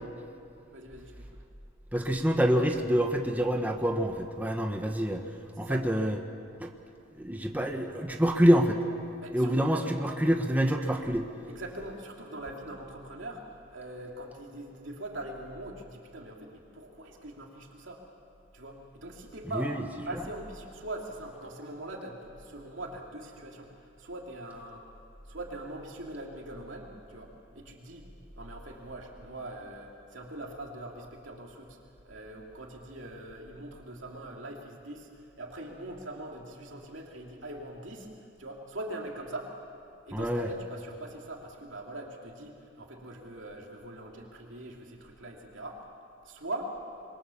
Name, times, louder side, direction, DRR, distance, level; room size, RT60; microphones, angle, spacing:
voice 1, 0.7-1.3 5.6-5.8 9.2-9.9 11.5-13.4 13.7-18.0 18.5-19.8 20.0-24.9 25.3-28.0 28.4-31.8 32.0-38.1 38.4-39.5 40.1-45.8 46.2-46.8, right 1 dB, 65° right, 0 dB, 2.8 m, -42 dB
voice 2, 1.9-5.2 5.6-6.2 6.6-6.7 7.2-8.8 9.3-11.2 19.6-19.8 40.1-40.5, equal, 10° right, 3 dB, 1.2 m, -26 dB
27.0 x 22.5 x 7.1 m, 2.5 s
head